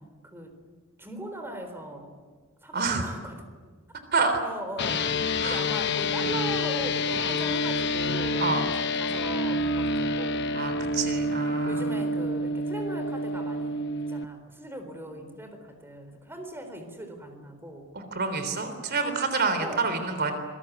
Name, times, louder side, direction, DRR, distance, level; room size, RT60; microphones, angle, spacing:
voice 1, 0.2-0.6 1.0-2.1 2.6-3.5 4.4-5.1 5.4-10.5 11.6-17.9 19.6-20.0, right 1 dB, 10° right, 6 dB, 4.1 m, -39 dB
voice 2, 2.7-3.1 4.1-4.4 5.4-5.6 8.4-8.6 10.5-11.9 18.0-20.3, right 4 dB, 50° right, 8 dB, 3.4 m, -28 dB
sound 1, 4.8-14.2, left 2 dB, 55° left, 1.1 m, -28 dB
26.5 x 22.0 x 9.4 m, 1.5 s
head